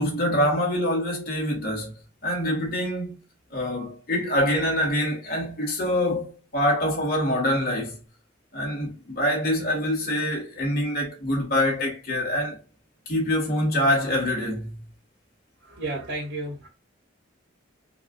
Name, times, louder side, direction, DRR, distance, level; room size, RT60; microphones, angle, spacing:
voice 1, 0.0-1.9 2.2-3.1 3.5-8.0 8.5-12.6 13.1-14.8, left 1 dB, 50° left, 1.8 m, -25 dB
voice 2, 15.6-16.7, right 2 dB, 75° right, 1.7 m, -32 dB
4.7 x 2.5 x 2.4 m
head